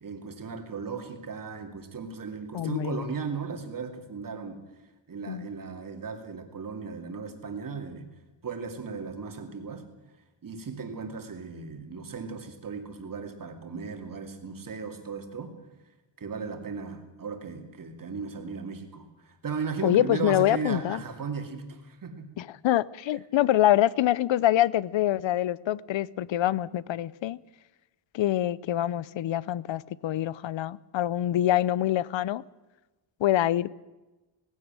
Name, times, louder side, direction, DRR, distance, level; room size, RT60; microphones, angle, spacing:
voice 1, 0.0-4.6 5.1-8.1 8.4-9.8 10.4-15.5 16.2-22.3, right 5 dB, 40° right, 2.5 m, -36 dB
voice 2, 2.5-3.0 5.3-5.5 19.8-21.0 22.4-27.4 28.1-32.4 33.2-33.7, left 13 dB, 65° left, 0.7 m, -25 dB
18.5 x 16.5 x 8.9 m
wide cardioid pair, 155°, 49 cm